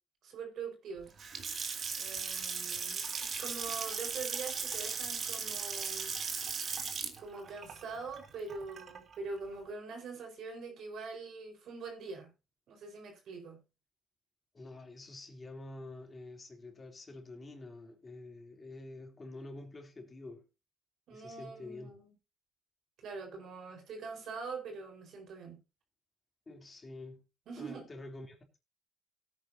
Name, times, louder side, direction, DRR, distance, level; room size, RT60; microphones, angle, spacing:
voice 1, 0.2-1.1 2.0-6.1 7.2-12.3 12.7-13.6 21.1-22.1 23.0-25.6 27.5-27.9, right 4 dB, 70° right, 4.6 m, -43 dB
Water tap faucet / Sink (filling or washing) / Splash splatter, 1.1-9.2, right 6 dB, 55° right, 2.5 m, -38 dB
voice 2, 14.5-20.5 21.1-21.9 26.5-27.2 27.6-28.6, left 2 dB, 30° left, 3.2 m, -48 dB
17.5 x 9.3 x 2.8 m
cardioid pair, 90°, 0 cm